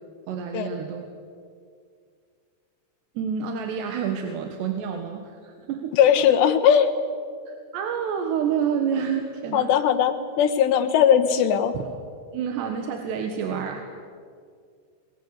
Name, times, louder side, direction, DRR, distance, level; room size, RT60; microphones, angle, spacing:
voice 1, 0.3-1.1 3.2-6.3 7.5-9.7 11.8-11.9 12.3-13.8, right 7 dB, 85° right, 5 dB, 3.7 m, -28 dB
voice 2, 5.9-6.9 9.5-11.8, left 8 dB, 85° left, 8 dB, 3.7 m, -19 dB
28.0 x 22.0 x 8.2 m, 2.2 s
omnidirectional pair, 4.8 m